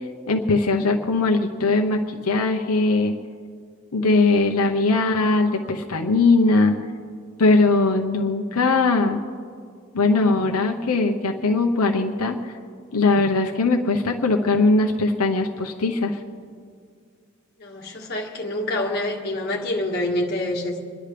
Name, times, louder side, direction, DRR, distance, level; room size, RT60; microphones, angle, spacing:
voice 1, 0.3-3.1 3.9-6.8 7.4-9.2 9.9-12.6 12.9-16.2, left 3 dB, 90° left, 2 dB, 0.8 m, -20 dB
voice 2, 17.6-20.8, left 1 dB, 45° left, -2 dB, 1.7 m, -26 dB
28.5 x 10.5 x 3.4 m, 2.2 s
head